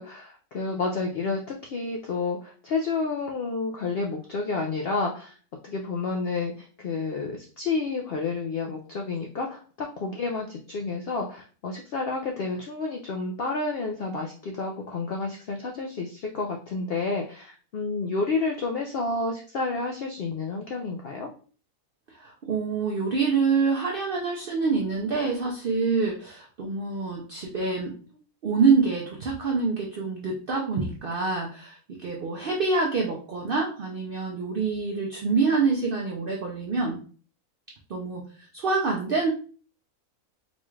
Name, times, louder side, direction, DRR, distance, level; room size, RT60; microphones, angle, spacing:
voice 1, 0.0-5.4 5.6-21.3, left 3 dB, 85° left, 1 dB, 0.5 m, -30 dB
voice 2, 22.1-27.9 28.4-37.0 37.9-38.2 38.5-39.3, right 4 dB, 75° right, -1 dB, 0.5 m, -26 dB
4.1 x 2.3 x 3.1 m, 0.41 s
omnidirectional pair, 1.6 m